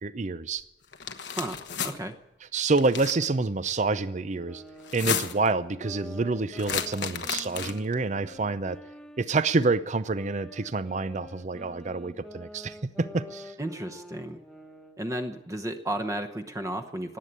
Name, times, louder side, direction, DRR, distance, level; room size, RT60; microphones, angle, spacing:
voice 1, 0.0-0.6 2.5-4.6 4.9-8.8 9.2-13.5, right 3 dB, 40° right, 15 dB, 0.6 m, -27 dB
sound 1, 0.9-1.9 2.7-3.3 4.8-5.5 6.6-7.9, left 7 dB, 80° left, 1.1 m, -32 dB
voice 2, 1.3-2.2 13.6-14.4 15.0-17.2, right 1 dB, 20° right, 8 dB, 0.9 m, -33 dB
sound 2, 4.3-9.7 10.1-15.0, left 1 dB, ahead, 1.2 m, -47 dB
19.0 x 8.4 x 8.7 m, 0.98 s
head